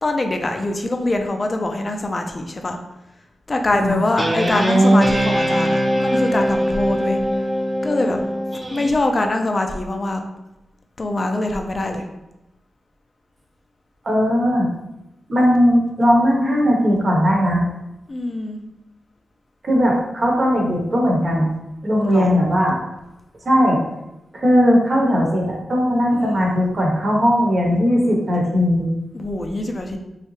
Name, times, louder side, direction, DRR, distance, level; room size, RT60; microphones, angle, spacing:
voice 1, 0.0-2.8 3.5-7.2 7.8-8.2 8.7-10.2 11.0-12.1 18.1-18.6 22.0-22.3 26.1-26.5 29.1-30.0, left 2 dB, 40° left, 4 dB, 0.5 m, -23 dB
Guitar, 4.2-8.9, equal, 20° right, 0.8 m, -20 dB
voice 2, 14.0-14.7 15.3-17.6 19.6-21.5 21.8-22.8 23.4-23.8 24.3-28.9, equal, 50° right, -1 dB, 0.9 m, -18 dB
3.3 x 2.7 x 3.0 m, 0.92 s
cardioid pair, 60°, 0 cm